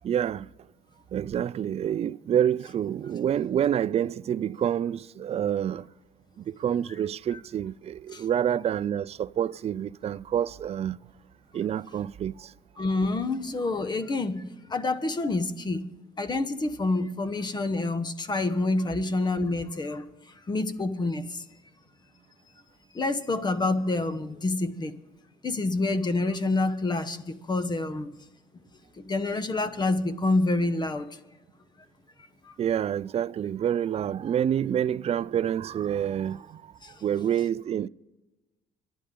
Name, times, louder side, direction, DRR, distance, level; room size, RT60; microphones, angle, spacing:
voice 1, 0.0-0.5 1.1-5.9 6.4-11.0 11.5-12.5 32.6-36.7 37.0-37.9, right 9 dB, 40° right, 0.4 m, -27 dB
voice 2, 12.8-15.9 16.2-20.0 20.5-21.4 22.9-25.0 25.4-28.1 29.0-31.1 32.4-32.5 36.8-36.9, left 2 dB, 25° left, 1.1 m, -27 dB
27.0 x 11.5 x 3.8 m
cardioid pair, 110°, 17 cm